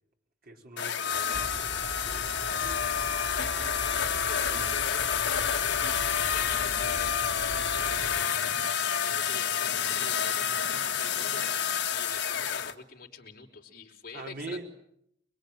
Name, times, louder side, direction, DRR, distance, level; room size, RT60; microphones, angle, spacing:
voice 1, 0.4-2.8 4.5-4.7 14.1-14.6, right 2 dB, 55° right, 2 dB, 5.0 m, -43 dB
sound 1, 0.8-12.7, left 8 dB, 70° left, 1.7 m, -29 dB
sound 2, 1.3-8.2, left 1 dB, 15° left, 2.5 m, -41 dB
voice 2, 3.4-8.5 9.0-11.5 11.9-14.7, left 5 dB, 50° left, 1 dB, 4.6 m, -46 dB
sound 3, 7.6-12.9, right 1 dB, 20° right, 4.7 m, -54 dB
27.5 x 22.0 x 9.1 m, 0.74 s
head